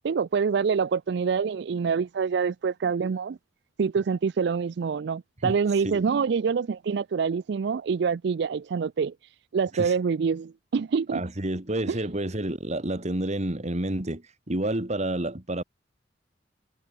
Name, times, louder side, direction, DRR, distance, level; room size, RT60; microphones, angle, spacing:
voice 1, 0.0-3.4 3.8-9.1 9.5-11.2 11.9-12.0, right 5 dB, 65° right, 0.4 m, -26 dB
voice 2, 11.1-15.6, right 1 dB, 40° right, 2.1 m, -29 dB
head